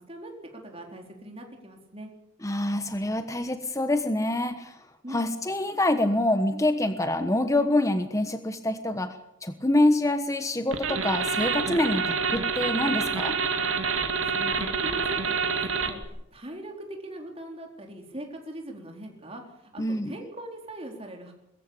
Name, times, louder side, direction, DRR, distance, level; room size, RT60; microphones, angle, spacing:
voice 1, 0.0-2.1 5.0-5.3 14.1-16.0 16.3-21.3, right 1 dB, 30° right, 2 dB, 4.1 m, -41 dB
voice 2, 2.4-4.8 5.1-13.4 19.8-20.1, left 1 dB, 15° left, 9 dB, 1.1 m, -26 dB
sound 1, 10.7-16.0, right 5 dB, 85° right, 2.4 m, -27 dB
22.0 x 14.5 x 8.7 m, 0.86 s
head